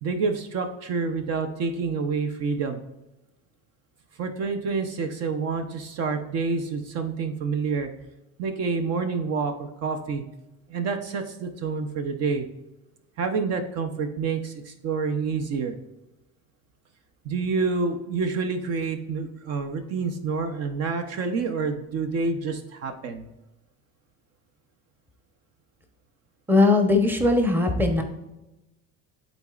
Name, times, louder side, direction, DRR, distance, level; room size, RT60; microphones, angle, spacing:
voice 1, 0.0-2.8 4.2-7.9 8.4-10.2 10.7-12.5 13.2-15.7 17.2-23.3, right 4 dB, 50° right, 7 dB, 0.7 m, -28 dB
voice 2, 26.5-28.0, left 2 dB, 5° right, 5 dB, 0.8 m, -19 dB
11.5 x 4.1 x 2.4 m, 0.97 s
cardioid pair, 120°, 33 cm